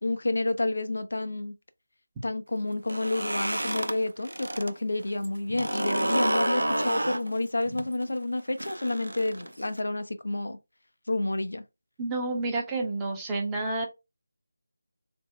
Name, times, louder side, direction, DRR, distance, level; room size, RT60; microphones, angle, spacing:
voice 1, 0.0-1.5 2.2-10.6 11.1-11.6, left 2 dB, 75° left, 0.5 m, -29 dB
sound 1, 2.8-4.7 5.0-9.8, right 1 dB, 90° right, 0.4 m, -30 dB
voice 2, 12.0-13.9, right 2 dB, 10° right, 0.8 m, -29 dB
3.4 x 2.1 x 3.1 m
figure-of-eight pair, 165°, 0 cm